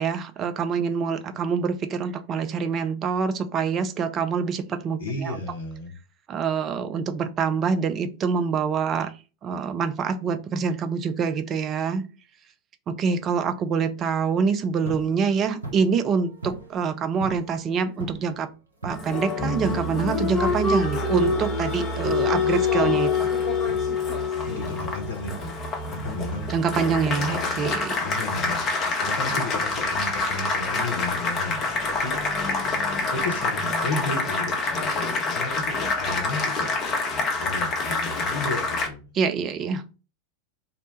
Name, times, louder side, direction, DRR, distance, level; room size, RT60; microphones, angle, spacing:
voice 1, 0.0-5.4 6.3-9.1 9.4-12.1 12.9-18.5 18.8-23.3 26.5-28.0 39.1-39.8, right 6 dB, 30° right, 0.3 m, -25 dB
voice 2, 5.0-5.9 24.5-26.5 27.1-27.7 28.0-31.6 32.0-32.2 33.1-36.7 37.2-39.0, left 3 dB, 65° left, 0.7 m, -33 dB
sound 1, 14.6-18.4 18.8-20.9 21.2-21.7 22.0-24.9 25.2-25.6 26.1-27.3 27.7-28.1 28.5-28.9 29.3-29.7 30.0-30.1, right 2 dB, 80° right, 0.8 m, -41 dB
Applause, 18.9-38.9, left 3 dB, 30° left, 0.7 m, -26 dB
2.7 x 2.1 x 3.9 m
figure-of-eight pair, 90°, 0 cm